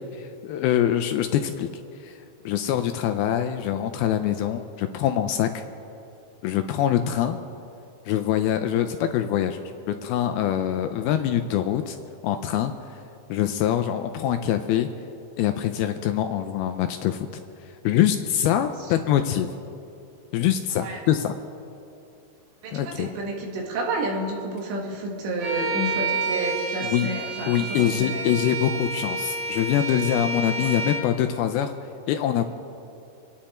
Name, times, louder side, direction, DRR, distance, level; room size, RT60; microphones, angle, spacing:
voice 1, 0.2-1.7 2.0-2.1 2.5-5.6 6.4-7.4 8.1-12.0 12.2-12.7 13.3-14.9 15.4-17.3 17.8-19.5 20.3-21.3 22.7-23.1 26.8-27.1 27.5-31.7 32.1-32.4, left 10 dB, 80° left, 7 dB, 2.3 m, -24 dB
voice 2, 22.6-28.4 30.6-30.7, right 2 dB, 90° right, 0 dB, 4.1 m, -30 dB
Bowed string instrument, 25.4-31.1, right 3 dB, 65° right, 3.2 m, -29 dB
27.0 x 10.5 x 4.3 m, 2.7 s
omnidirectional pair, 4.9 m